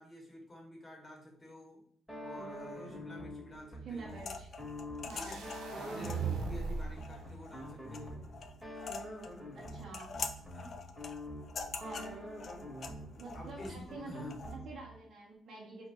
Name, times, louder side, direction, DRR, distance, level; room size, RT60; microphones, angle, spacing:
voice 1, 0.0-1.8 2.2-4.2 5.1-8.2 10.5-10.8 13.3-14.4, left 1 dB, 25° left, -1 dB, 1.6 m, -49 dB
sound 1, 2.1-15.0, left 1 dB, 5° right, 1.8 m, -46 dB
voice 2, 3.8-4.5 5.1-5.4 9.5-10.1 11.8-12.3 13.2-15.9, right 3 dB, 60° right, -2 dB, 1.1 m, -47 dB
sound 2, 4.1-14.6, left 4 dB, 50° left, 0.5 m, -46 dB
sound 3, 5.1-7.1, right 5 dB, 85° right, 0.7 m, -37 dB
4.7 x 2.8 x 3.7 m, 0.64 s
cardioid pair, 90°, 0 cm